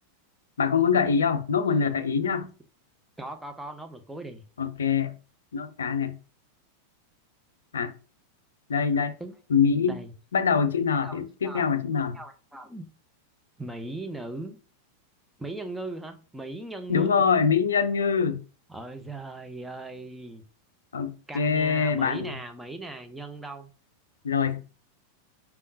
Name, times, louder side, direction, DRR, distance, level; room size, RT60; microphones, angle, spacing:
voice 1, 0.6-2.5 4.6-5.1 5.5-6.2 7.7-7.9 8.7-9.1 9.5-10.0 10.3-12.2 16.9-18.4 20.9-22.3 24.2-24.6, left 6 dB, 70° left, 0.4 m, -24 dB
voice 2, 3.2-4.4 9.2-9.3 9.8-10.1 11.0-11.6 12.1-12.9 13.6-14.6 15.4-17.3 18.7-20.4 21.3-23.7, right 2 dB, 5° right, 0.6 m, -38 dB
4.5 x 3.6 x 2.6 m
figure-of-eight pair, 90°, 0 cm